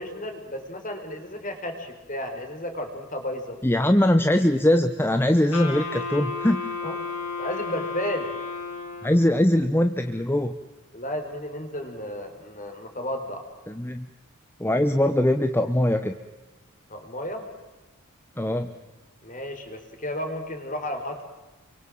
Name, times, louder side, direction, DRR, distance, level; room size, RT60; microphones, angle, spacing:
voice 1, 0.0-3.6 6.8-7.0 7.4-8.3 10.9-13.5 16.9-17.5 19.2-21.2, left 1 dB, 35° left, 5 dB, 4.3 m, -33 dB
voice 2, 3.6-6.7 9.0-10.6 13.7-14.1 14.6-16.1 18.4-18.7, left 1 dB, 10° left, 8 dB, 0.8 m, -21 dB
Wind instrument woodwind instrument, 5.5-9.4, left 4 dB, 80° left, 5.6 m, -33 dB
29.5 x 24.0 x 7.6 m, 1.1 s
head